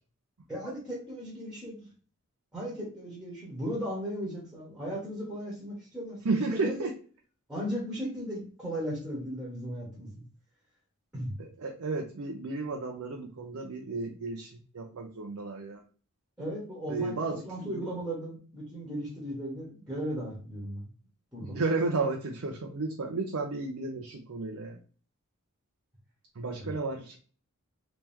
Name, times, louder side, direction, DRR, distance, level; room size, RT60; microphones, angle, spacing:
voice 1, 0.5-1.8 2.5-6.9 7.5-10.2 11.1-11.3 16.4-20.9 21.3-21.6 26.6-26.8, equal, 5° right, -3 dB, 1.2 m, -36 dB
voice 2, 6.2-6.9 11.4-15.8 16.9-17.8 21.4-24.8 26.4-27.2, right 3 dB, 70° right, 2 dB, 0.6 m, -33 dB
3.2 x 2.9 x 3.4 m, 0.39 s
head